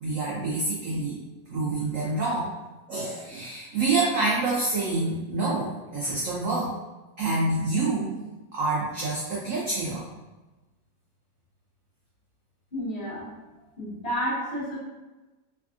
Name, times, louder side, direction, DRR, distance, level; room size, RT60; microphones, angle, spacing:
voice 1, 0.0-1.2 1.5-2.5 2.9-6.7 7.2-8.2 8.5-10.0, right 3 dB, 80° right, -6 dB, 0.7 m, -27 dB
voice 2, 12.7-13.2 13.8-14.8, equal, 40° left, -10 dB, 1.3 m, -30 dB
3.3 x 2.4 x 2.4 m, 1.1 s
omnidirectional pair, 2.0 m